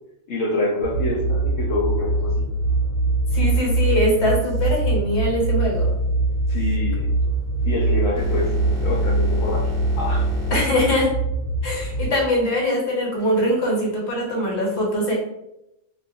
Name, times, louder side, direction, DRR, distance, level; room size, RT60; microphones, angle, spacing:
voice 1, 0.3-2.5 6.5-7.1 7.6-10.3, left 1 dB, 85° left, -4 dB, 0.9 m, -26 dB
sound 1, 0.8-12.1, right 2 dB, 60° right, 0.4 m, -22 dB
voice 2, 3.3-5.9 10.5-11.1 11.6-15.1, equal, 65° left, -3 dB, 1.1 m, -22 dB
sound 2, 4.4-4.8 6.5-6.8 7.6-10.6, left 2 dB, 5° right, 0.8 m, -35 dB
2.2 x 2.2 x 2.6 m, 0.86 s
omnidirectional pair, 1.3 m